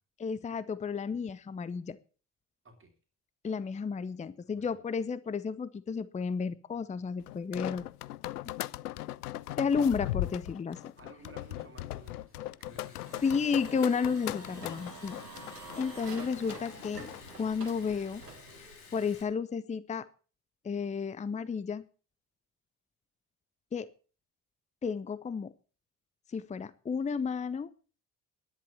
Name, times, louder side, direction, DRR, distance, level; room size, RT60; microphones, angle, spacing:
voice 1, 0.2-2.0 3.4-7.8 9.6-10.9 13.2-15.2 15.8-17.1 17.4-18.2 18.9-20.1 20.6-21.8 23.7-23.9 24.8-25.5 26.3-27.7, left 5 dB, 15° left, 17 dB, 0.7 m, -32 dB
voice 2, 4.4-4.8 11.0-13.4, right 3 dB, 25° right, 5 dB, 3.1 m, -55 dB
sound 1, 7.3-17.3, left 16 dB, 75° left, 0.5 m, -39 dB
Liquid, 11.1-19.2, left 5 dB, 50° left, 5.2 m, -55 dB
sound 2, 13.0-18.8, right 3 dB, 85° right, 1.6 m, -48 dB
11.5 x 10.5 x 6.9 m, 0.39 s
figure-of-eight pair, 50°, 47 cm